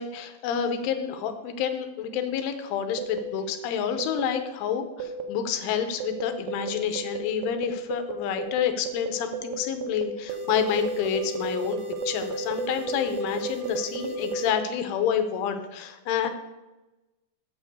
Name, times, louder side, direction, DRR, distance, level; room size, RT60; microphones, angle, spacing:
voice 1, 0.0-11.8 12.1-16.3, left 8 dB, 85° left, 7 dB, 3.3 m, -28 dB
sound 1, 3.0-3.2 4.0-4.2 5.0-5.2 6.0-6.2 6.5-6.7 7.0-7.2 7.4-7.6 7.9-8.1 8.4-8.6 8.9-9.1 9.3-9.5 9.8-10.0 10.3-14.5, right 3 dB, 80° right, 3.4 m, -33 dB
8.7 x 6.9 x 6.5 m, 1.1 s
omnidirectional pair, 5.5 m